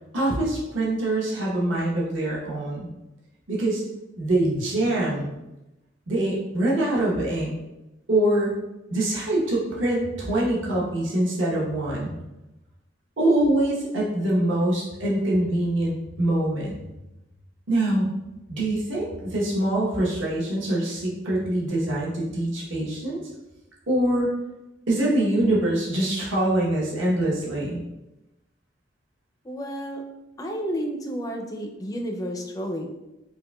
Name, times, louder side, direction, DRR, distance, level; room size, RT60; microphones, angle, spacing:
voice 1, 0.1-2.9 3.5-3.8 4.2-5.3 6.1-7.5 8.1-8.6 8.9-12.1 13.2-16.8 17.7-18.1 18.5-23.2 23.9-24.3 24.9-27.8, right 1 dB, 70° right, -5 dB, 0.9 m, -24 dB
voice 2, 29.4-30.0 30.4-32.9, equal, 20° left, 2 dB, 0.4 m, -31 dB
4.7 x 2.5 x 2.2 m, 0.97 s
head